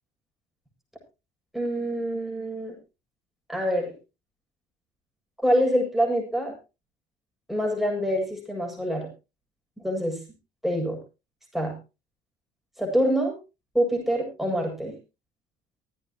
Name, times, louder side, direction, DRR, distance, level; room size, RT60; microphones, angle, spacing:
voice 1, 1.5-2.7 3.5-3.9 5.4-6.5 7.5-9.1 9.8-10.2 10.6-11.0 11.5-11.7 12.8-13.3 13.7-14.9, equal, ahead, 0 dB, 7.8 m, -25 dB
25.0 x 9.2 x 3.1 m, 0.29 s
cardioid pair, 110°, 17 cm